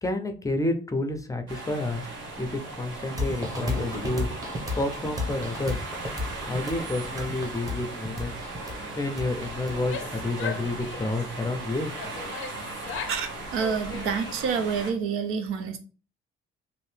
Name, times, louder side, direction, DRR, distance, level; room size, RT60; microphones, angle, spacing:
voice 1, 0.0-2.1 2.4-4.3 4.8-5.8 6.5-8.3 9.0-11.9, left 2 dB, 15° left, 0.5 m, -29 dB
sound 1, 1.5-14.9, right 2 dB, 65° right, 1.1 m, -38 dB
sound 2, 3.2-10.7, left 2 dB, 15° right, 0.9 m, -33 dB
Female speech woman speaking / Yell, 9.7-11.3 12.0-13.2 13.5-14.5, left 7 dB, 70° left, 0.5 m, -38 dB
voice 2, 13.1-15.8, right 6 dB, 85° right, 0.6 m, -28 dB
2.8 x 2.6 x 3.2 m
cardioid pair, 110°, 21 cm